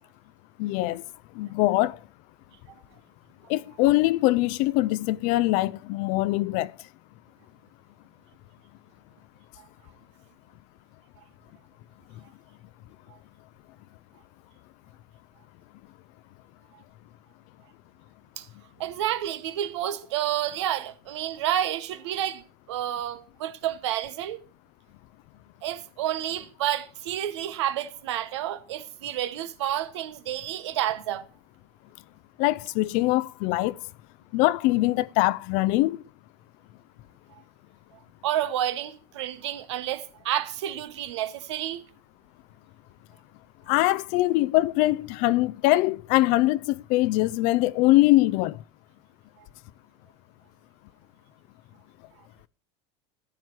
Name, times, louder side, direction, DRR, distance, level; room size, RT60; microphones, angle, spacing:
voice 1, 0.6-1.0 1.4-2.0 3.5-6.7 32.4-33.8 34.3-36.0 43.7-48.6, left 18 dB, 60° left, 0.4 m, -23 dB
voice 2, 18.8-22.4 22.7-24.4 25.6-31.2 38.2-41.8, right 11 dB, 85° right, 0.9 m, -30 dB
14.0 x 9.7 x 3.1 m
supercardioid pair, 110°, 14 cm